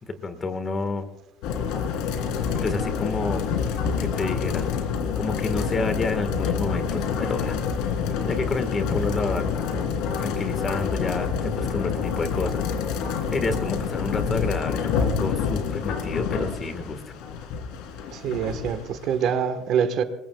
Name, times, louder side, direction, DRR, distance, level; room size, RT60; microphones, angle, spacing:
voice 1, 0.0-1.1 2.6-3.5 4.0-4.7 5.1-7.9 8.3-9.8 10.2-17.2, left 3 dB, 20° left, 9 dB, 1.5 m, -30 dB
sound 1, 1.4-19.3, left 6 dB, 75° left, 3.0 m, -27 dB
voice 2, 18.1-20.0, right 7 dB, 50° right, 10 dB, 1.2 m, -25 dB
27.5 x 22.0 x 2.3 m, 0.91 s
cardioid pair, 175°, 0 cm